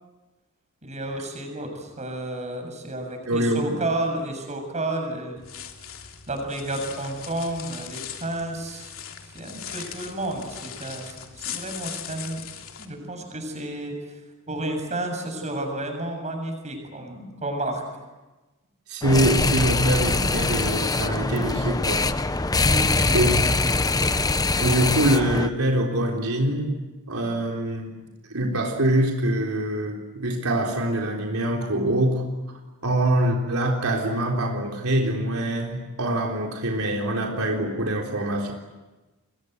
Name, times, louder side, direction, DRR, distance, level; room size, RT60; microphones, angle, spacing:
voice 1, 0.8-5.4 6.3-8.9 9.3-12.4 12.8-13.9 14.5-17.8 22.6-23.4, right 1 dB, 35° right, 4 dB, 7.3 m, -31 dB
voice 2, 3.3-3.7 9.8-9.9 18.9-22.1 23.1-23.5 24.6-26.7 27.1-27.9 28.3-32.2 32.8-38.5, right 1 dB, 80° right, 1 dB, 3.8 m, -24 dB
sound 1, 5.4-12.9, left 9 dB, 70° left, 3.0 m, -39 dB
sound 2, 19.0-25.5, left 3 dB, 15° left, 0.8 m, -23 dB
29.5 x 23.0 x 8.1 m, 1.1 s
head